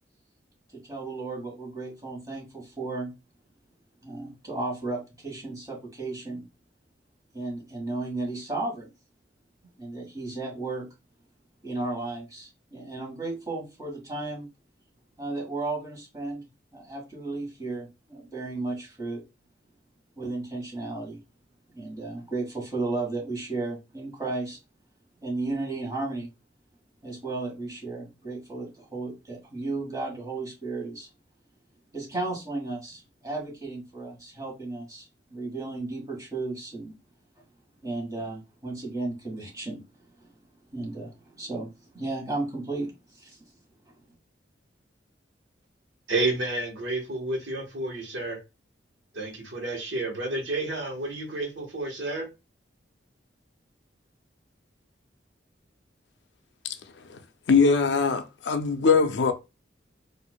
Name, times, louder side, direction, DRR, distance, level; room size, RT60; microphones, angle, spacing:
voice 1, 0.8-3.1 4.0-6.4 7.3-8.9 9.8-10.9 11.6-14.5 15.2-16.4 16.7-19.2 20.2-21.2 21.7-24.6 25.2-26.3 27.0-31.1 31.9-36.9 37.8-39.8 40.7-41.1 41.4-41.7 41.9-42.9 43.1-43.4, right 2 dB, 20° right, 1.6 m, -34 dB
voice 2, 46.1-48.4 49.1-52.3, right 2 dB, 80° right, 1.1 m, -30 dB
voice 3, 57.5-59.3, left 5 dB, 70° left, 0.5 m, -21 dB
4.4 x 2.5 x 2.2 m
head